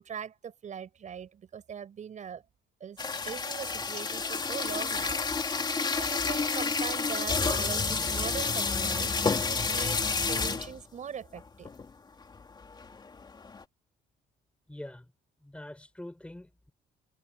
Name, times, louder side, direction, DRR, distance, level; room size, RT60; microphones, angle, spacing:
voice 1, 0.0-2.4 2.8-3.0 3.2-5.5 5.9-10.0 10.3-11.7, right 8 dB, 45° right, 7.0 m, -41 dB
sound 1, 3.0-10.8 11.4-11.5 11.7-11.9 12.3-13.6, left 4 dB, 25° left, 3.1 m, -30 dB
voice 2, 14.7-15.1 15.4-16.7, left 1 dB, 5° left, 7.8 m, -44 dB
cardioid pair, 110°, 17 cm